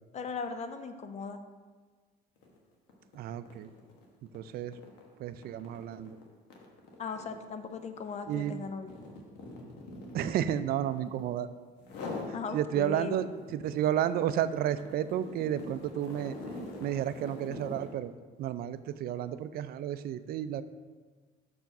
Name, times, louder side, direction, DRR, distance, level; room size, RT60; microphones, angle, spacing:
voice 1, 0.1-1.4 7.0-8.9 12.3-13.2, left 5 dB, 40° left, 8 dB, 0.5 m, -38 dB
sound 1, 2.4-2.6 2.9-11.3 11.8-12.4 12.8-18.0, left 2 dB, 85° left, 1.2 m, -45 dB
voice 2, 3.1-3.7 4.3-4.8 5.2-6.2 8.3-8.5 10.1-11.5 12.5-16.3 16.8-18.1 18.4-20.6, right 11 dB, 65° right, 13 dB, 0.4 m, -32 dB
6.4 x 4.6 x 5.8 m, 1.4 s
cardioid pair, 110°, 17 cm